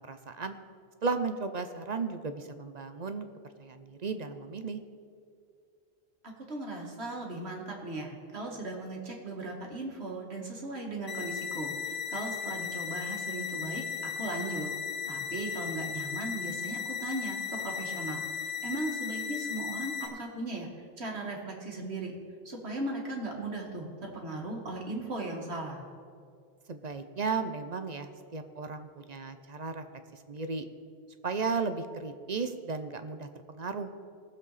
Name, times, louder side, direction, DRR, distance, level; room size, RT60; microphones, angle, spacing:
voice 1, 0.1-0.5 1.0-3.3 3.6-4.8 26.7-29.8 30.3-30.6 31.2-33.3 33.5-33.9, right 4 dB, 45° right, 8 dB, 0.7 m, -34 dB
voice 2, 6.2-14.7 15.0-20.7 21.0-22.1 22.5-25.8, right 2 dB, 85° right, -1 dB, 2.3 m, -37 dB
sound 1, 11.1-20.1, left 7 dB, 80° left, 1.5 m, -36 dB
19.0 x 7.6 x 4.1 m, 2.3 s
omnidirectional pair, 1.1 m